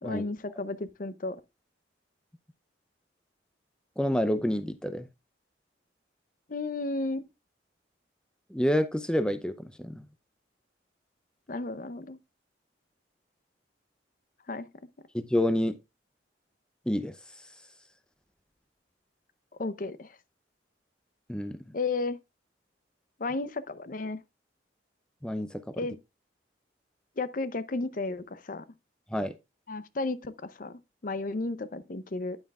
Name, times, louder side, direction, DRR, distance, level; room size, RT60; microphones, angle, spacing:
voice 1, 0.0-1.4 6.5-7.3 11.5-12.2 14.5-14.7 19.6-20.1 21.7-22.2 23.2-24.2 25.8-26.0 27.2-28.6 29.7-32.4, left 3 dB, 45° left, 0.6 m, -33 dB
voice 2, 4.0-5.1 8.5-10.0 15.1-15.8 16.9-17.1 21.3-21.6 25.2-25.6 29.1-29.3, left 1 dB, 5° left, 0.5 m, -28 dB
9.6 x 8.8 x 2.3 m
head